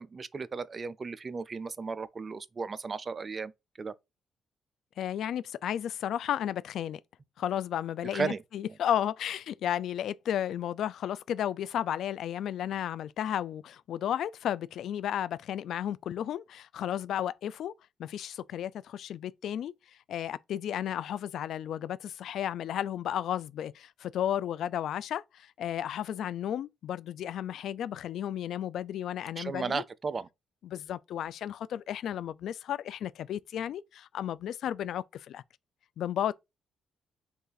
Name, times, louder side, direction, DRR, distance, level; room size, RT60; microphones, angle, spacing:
voice 1, 0.0-3.5 3.8-3.9 8.1-8.4 29.4-30.3, right 4 dB, 40° right, 0.4 m, -35 dB
voice 2, 5.0-7.0 7.4-17.7 18.0-19.7 20.1-29.8 30.6-35.4 36.0-36.3, left 10 dB, 75° left, 0.3 m, -33 dB
5.4 x 2.5 x 3.9 m
cardioid pair, 70°, 0 cm